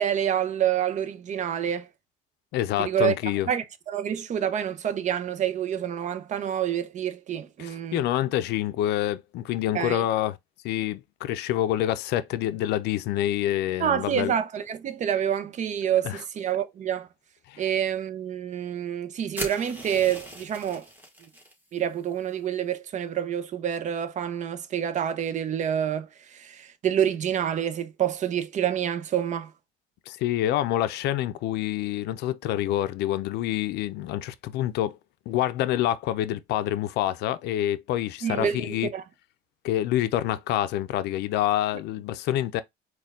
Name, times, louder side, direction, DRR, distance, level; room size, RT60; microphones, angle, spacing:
voice 1, 0.0-1.9 2.8-3.1 3.5-8.0 9.7-10.1 13.8-17.1 17.6-20.9 21.7-29.5 38.2-39.0, right 9 dB, 45° right, 0.6 m, -27 dB
voice 2, 2.5-3.5 7.6-10.4 10.6-14.3 16.0-16.2 17.5-17.6 30.1-35.0 35.3-38.9 39.6-42.6, left 13 dB, 80° left, 0.5 m, -27 dB
sound 1, 19.3-21.5, equal, 10° right, 1.5 m, -38 dB
4.3 x 2.3 x 3.5 m
cardioid pair, 110°, 17 cm